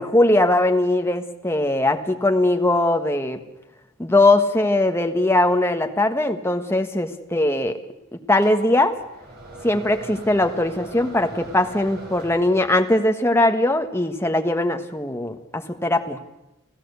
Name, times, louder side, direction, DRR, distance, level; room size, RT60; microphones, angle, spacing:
voice 1, 0.0-3.4 4.0-7.8 8.3-8.9 9.6-16.2, left 1 dB, 10° left, 5 dB, 1.5 m, -20 dB
sound 1, 8.4-12.9, right 1 dB, 50° right, 6.2 m, -41 dB
29.0 x 15.0 x 8.2 m, 0.92 s
head